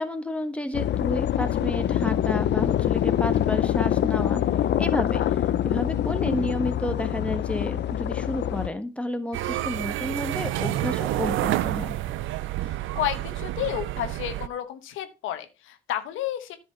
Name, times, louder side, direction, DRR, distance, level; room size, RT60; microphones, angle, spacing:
voice 1, 0.0-4.4 4.8-11.9, left 1 dB, 5° left, 7 dB, 1.4 m, -31 dB
sound 1, 0.7-8.7, left 11 dB, 60° left, 0.6 m, -25 dB
sound 2, 9.3-14.5, right 14 dB, 85° right, 0.6 m, -29 dB
voice 2, 12.6-16.6, left 11 dB, 90° left, 9 dB, 1.1 m, -31 dB
10.5 x 6.2 x 4.3 m, 0.28 s
cardioid pair, 90°, 20 cm